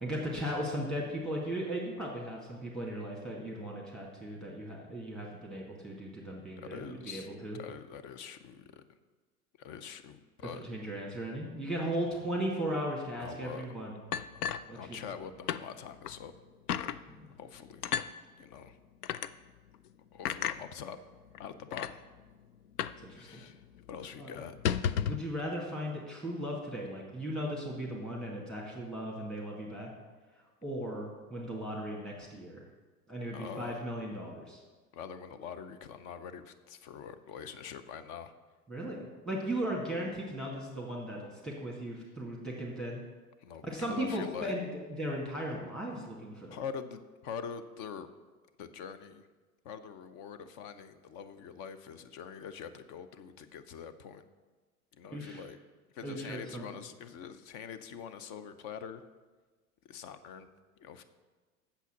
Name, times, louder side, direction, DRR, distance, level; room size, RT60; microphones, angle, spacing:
voice 1, 0.0-7.6 10.6-14.0 14.7-15.0 17.1-17.3 23.0-23.4 24.2-24.3 25.1-29.9 30.6-32.6 33.1-34.6 38.7-43.0 43.6-46.6 55.1-55.4 56.0-56.6, right 1 dB, ahead, -3 dB, 2.0 m, -37 dB
voice 2, 6.6-7.3 7.5-8.8 9.6-10.6 13.2-13.8 14.7-16.3 17.4-17.9 18.4-18.8 20.1-21.0 21.4-22.0 23.1-24.6 33.3-33.8 34.9-38.3 43.4-44.5 46.5-48.1 48.6-49.3 49.6-54.2 54.9-55.6 55.9-59.0 59.8-60.5 60.8-61.0, left 7 dB, 40° left, 12 dB, 0.8 m, -44 dB
sound 1, 14.1-15.2 15.5-15.6 16.0-16.2 16.7-17.0 17.8-18.1 19.0-19.3 20.2-20.6 21.3-21.4 21.7-21.9 22.8-23.0 23.3-23.4 23.7-23.9 24.5-25.3, left 9 dB, 85° left, 0.5 m, -32 dB
8.1 x 7.1 x 6.0 m, 1.3 s
hypercardioid pair, 90°, 45 cm